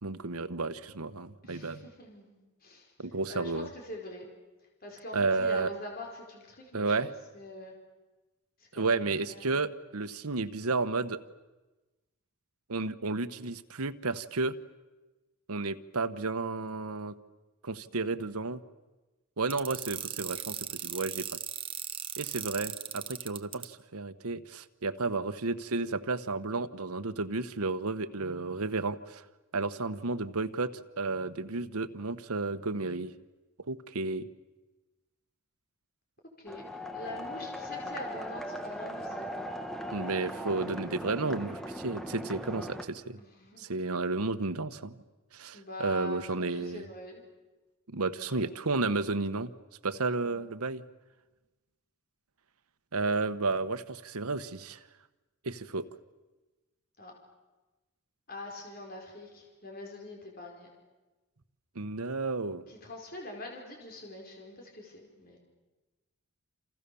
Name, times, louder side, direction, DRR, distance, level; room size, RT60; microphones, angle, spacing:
voice 1, 0.0-1.9 3.0-3.7 5.1-5.7 6.7-7.1 8.7-11.2 12.7-14.5 15.5-17.1 17.6-18.6 19.4-21.4 22.2-29.2 29.5-33.1 33.6-34.3 39.9-43.2 43.6-45.0 45.3-46.9 47.9-49.5 49.8-50.8 52.9-54.9 55.4-55.9 61.7-62.7, right 3 dB, 85° right, 10 dB, 1.2 m, -32 dB
voice 2, 1.4-2.9 3.3-4.3 4.8-7.7 8.6-9.6 36.4-36.7 36.9-39.5 43.2-43.7 45.5-47.2 48.1-48.7 50.2-50.4 57.0-57.1 58.3-60.7 62.7-65.4, left 2 dB, 40° left, 0 dB, 5.1 m, -44 dB
sound 1, 19.5-23.7, right 9 dB, 25° right, 1.1 m, -37 dB
sound 2, 36.5-42.8, equal, ahead, 1.5 m, -39 dB
28.5 x 28.5 x 7.0 m, 1.1 s
head